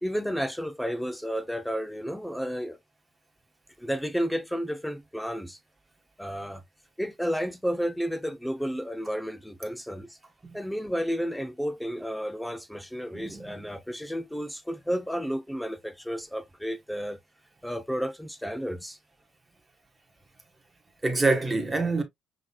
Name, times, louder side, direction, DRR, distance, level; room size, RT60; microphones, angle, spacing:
voice 1, 0.0-2.8 3.8-5.6 6.2-6.6 7.0-10.2 10.5-17.2 17.6-19.0, equal, 5° left, 0.6 m, -32 dB
voice 2, 13.1-13.6 21.0-22.0, right 3 dB, 15° right, 1.3 m, -26 dB
5.7 x 3.1 x 2.3 m
cardioid pair, 90°, 0 cm